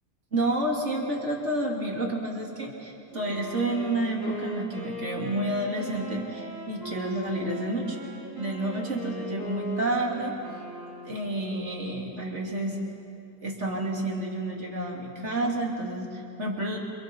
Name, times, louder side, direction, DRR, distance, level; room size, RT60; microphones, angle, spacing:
voice 1, 0.3-8.0 8.4-10.3 11.0-12.8 13.4-16.8, right 1 dB, 45° right, -1 dB, 3.4 m, -30 dB
Wind instrument woodwind instrument, 3.1-11.4, equal, 10° right, 5.4 m, -39 dB
29.5 x 27.0 x 4.7 m, 2.6 s
omnidirectional pair, 1.7 m